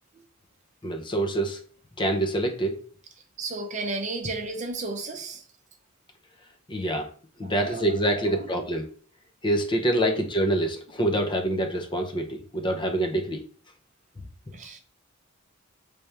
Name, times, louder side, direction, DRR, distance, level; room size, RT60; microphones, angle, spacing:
voice 1, 0.8-1.6 2.0-2.8 6.7-7.1 7.4-8.8 9.4-13.4, right 1 dB, 20° left, 0.6 m, -26 dB
voice 2, 3.4-5.4 7.4-8.5 10.1-10.2 14.5-14.8, right 3 dB, 35° right, 0.7 m, -34 dB
4.1 x 3.4 x 3.3 m
head